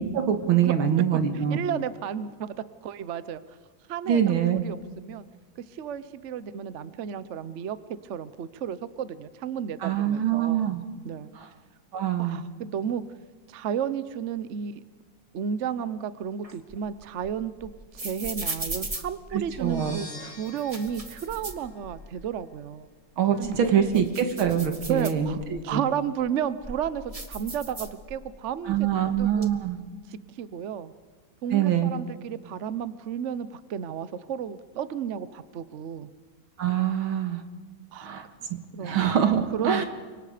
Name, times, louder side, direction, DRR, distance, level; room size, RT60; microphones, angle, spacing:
voice 1, 0.1-1.6 4.1-4.6 9.8-10.8 11.4-11.5 11.9-12.4 19.3-20.0 23.2-25.8 28.7-29.8 31.5-31.9 36.6-37.4 38.0-38.3 38.8-39.8, right 9 dB, 80° right, 7 dB, 2.4 m, -24 dB
voice 2, 1.3-2.6 2.8-3.4 3.9-4.2 4.5-5.2 5.7-7.8 8.1-10.6 11.0-11.3 12.2-13.0 13.5-14.8 15.3-22.9 23.4-23.5 24.9-29.5 30.1-30.9 31.4-36.1 37.9-38.1 38.7-39.0 39.5-39.8, right 8 dB, 60° right, 15 dB, 0.8 m, -32 dB
sound 1, 16.4-19.9 20.5-22.3 22.6-22.7 23.2-25.6 26.2-28.4 28.6-29.4, right 2 dB, 20° right, 1.3 m, -38 dB
sound 2, 19.5-22.3, left 1 dB, 65° left, 5.1 m, -47 dB
29.5 x 25.0 x 5.0 m, 1.4 s
omnidirectional pair, 2.2 m